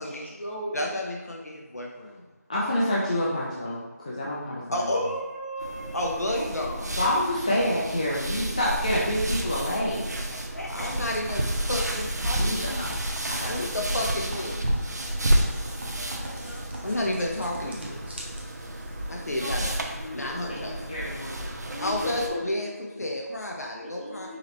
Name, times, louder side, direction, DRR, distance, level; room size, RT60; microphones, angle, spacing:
voice 1, 0.0-0.8 4.9-6.8 15.8-16.0 19.4-19.7 19.9-20.6 21.6-23.1 23.8-24.4, equal, 45° left, -4 dB, 1.2 m, -38 dB
voice 2, 0.7-2.2 4.7-5.0 5.9-7.0 10.3-11.4 11.7-13.0 13.5-14.6 15.4-15.7 16.0-18.1 19.1-19.8 20.1-20.8 21.8-24.4, left 1 dB, 65° left, 0 dB, 0.7 m, -31 dB
voice 3, 2.5-4.9 7.0-10.2 12.4-12.9 13.3-13.7 20.5-21.5, left 1 dB, 25° left, -6 dB, 0.4 m, -28 dB
sound 1, 5.6-22.3, right 1 dB, 75° right, 0.6 m, -31 dB
sound 2, 10.8-19.2, equal, 40° right, 0.7 m, -41 dB
4.7 x 3.1 x 3.2 m, 1.2 s
figure-of-eight pair, 170°, 9 cm